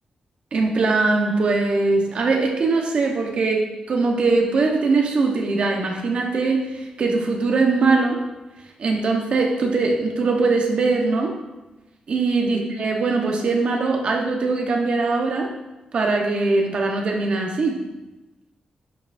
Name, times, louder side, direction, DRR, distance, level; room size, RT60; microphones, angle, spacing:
voice 1, 0.5-8.2 8.8-11.3 12.1-15.5 15.9-17.8, right 3 dB, 50° right, 1 dB, 1.1 m, -21 dB
11.0 x 5.8 x 2.6 m, 1.1 s
wide cardioid pair, 150°, 2 cm